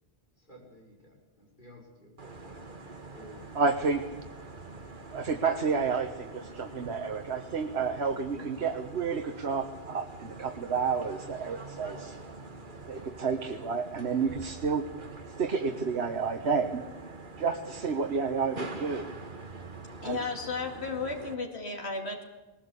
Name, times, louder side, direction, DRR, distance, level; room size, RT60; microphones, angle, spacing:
voice 1, 0.4-2.8 3.1-3.7, equal, 50° left, -1 dB, 6.3 m, -53 dB
sound 1, 2.2-21.3, right 3 dB, 50° right, 2.0 m, -45 dB
voice 2, 3.5-4.0 5.1-12.2 12.9-14.9 15.4-16.8 17.4-19.1 20.0-20.2, right 5 dB, 80° right, 6 dB, 1.5 m, -30 dB
voice 3, 20.0-22.3, left 4 dB, 85° left, 3 dB, 2.7 m, -34 dB
20.0 x 20.0 x 8.4 m, 1.1 s
omnidirectional pair, 1.1 m